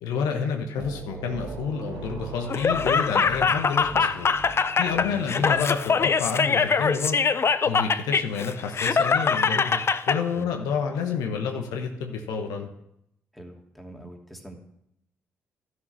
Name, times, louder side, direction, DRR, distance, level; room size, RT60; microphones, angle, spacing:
voice 1, 0.0-4.3 4.8-7.2 7.7-9.8 10.1-12.7, left 6 dB, 75° left, 3 dB, 1.0 m, -29 dB
sound 1, 0.8-7.2, right 4 dB, 70° right, 1.8 m, -41 dB
Laughter, 2.5-10.2, left 5 dB, 40° left, 0.6 m, -23 dB
voice 2, 4.9-5.3 10.3-10.5 13.3-14.6, right 1 dB, ahead, 1 dB, 2.4 m, -43 dB
12.0 x 6.4 x 5.5 m, 0.78 s
hypercardioid pair, 45°, 7 cm